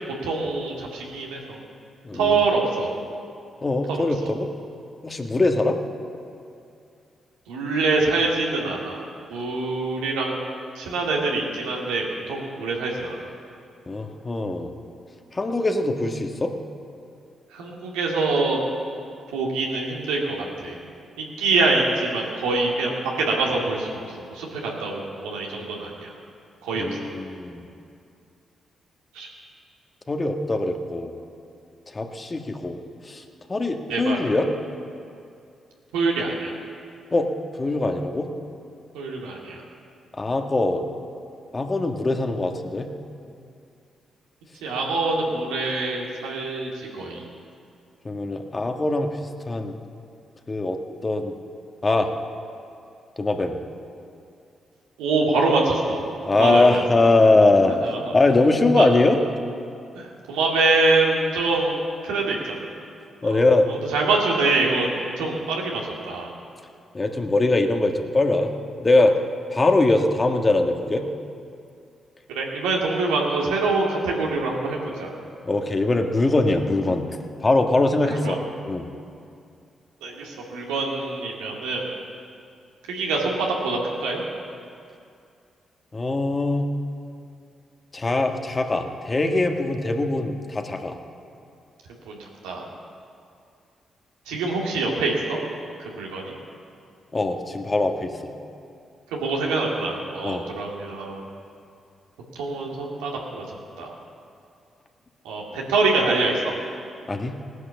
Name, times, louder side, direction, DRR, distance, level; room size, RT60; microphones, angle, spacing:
voice 1, 0.2-1.4 2.1-2.9 4.2-4.3 7.5-9.0 9.3-10.3 10.8-13.3 17.5-18.6 19.3-20.7 21.2-22.9 23.2-24.0 24.3-26.1 26.6-26.9 29.1-29.3 33.9-34.3 35.9-36.5 38.9-39.6 44.6-47.2 55.0-56.0 56.3-56.8 57.8-58.0 58.8-58.9 59.9-61.7 62.0-62.6 63.2-63.4 63.7-66.3 72.3-75.1 78.0-78.4 80.0-81.9 82.9-84.2 92.1-92.6 94.3-95.4 95.8-96.3 99.1-101.2 102.3-103.4 103.8-103.9 105.2-106.4, right 3 dB, 90° right, -2 dB, 2.3 m, -25 dB
voice 2, 2.0-2.4 3.6-4.5 5.0-5.8 13.9-14.7 15.3-16.5 26.7-27.6 30.1-31.1 31.9-33.2 33.5-34.5 37.1-37.3 37.6-38.3 40.2-40.8 41.5-42.9 48.0-49.1 49.5-49.7 50.5-51.3 51.8-52.1 53.2-53.5 56.2-59.2 63.2-63.6 66.9-68.5 68.8-69.1 69.5-71.0 75.4-78.4 78.7-78.9 85.9-86.7 87.9-91.0 97.1-98.3 100.2-100.4 107.1-107.4, left 2 dB, 35° left, 4 dB, 1.6 m, -22 dB
17.0 x 9.9 x 7.1 m, 2.5 s
supercardioid pair, 50°, 0 cm